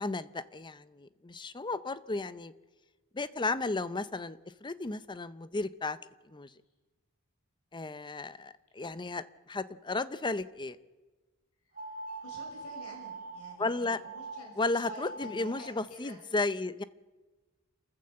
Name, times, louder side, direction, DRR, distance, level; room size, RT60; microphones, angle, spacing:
voice 1, 0.0-2.5 3.1-6.0 6.3-6.5 7.7-10.8 13.6-14.0 14.6-16.8, left 3 dB, 20° left, 15 dB, 0.6 m, -34 dB
sound 1, 11.7-13.6 14.0-14.4 14.8-15.6, right 3 dB, 40° right, 7.2 m, -42 dB
voice 2, 12.2-16.2, left 1 dB, 75° left, 1 dB, 6.0 m, -50 dB
27.0 x 14.5 x 7.8 m, 1.3 s
head